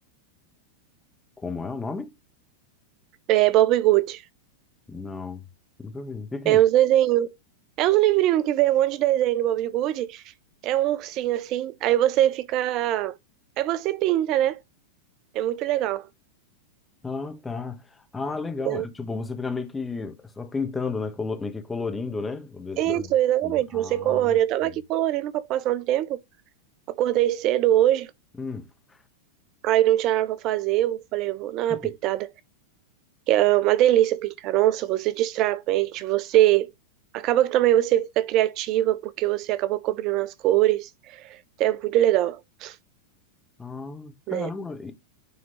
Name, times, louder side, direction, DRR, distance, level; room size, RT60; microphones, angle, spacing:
voice 1, 1.4-2.1 4.9-5.4 5.8-6.6 17.0-23.1 23.4-24.7 28.4-29.0 31.7-31.9 43.6-44.9, left 4 dB, 15° left, 1.4 m, -33 dB
voice 2, 3.3-4.2 6.5-7.3 7.8-10.2 10.6-13.1 13.6-14.6 15.3-16.1 18.6-18.8 22.8-26.2 27.0-28.1 29.6-32.3 33.3-36.7 37.1-42.8 44.3-44.5, right 13 dB, 45° right, 0.5 m, -22 dB
9.9 x 3.6 x 3.1 m
hypercardioid pair, 100°, 0 cm